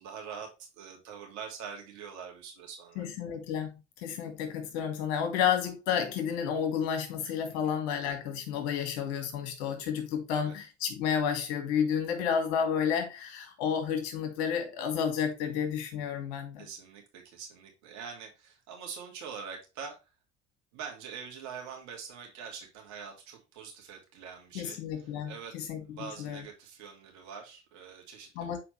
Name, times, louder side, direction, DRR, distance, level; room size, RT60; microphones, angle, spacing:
voice 1, 0.0-3.0 7.5-7.8 10.3-10.5 16.6-20.0 20.7-28.6, right 6 dB, 55° right, 2.8 m, -44 dB
voice 2, 3.0-3.7 4.0-16.6 24.5-26.4 28.4-28.6, left 7 dB, 65° left, 2.1 m, -31 dB
6.8 x 4.9 x 3.2 m
figure-of-eight pair, 65°, 34 cm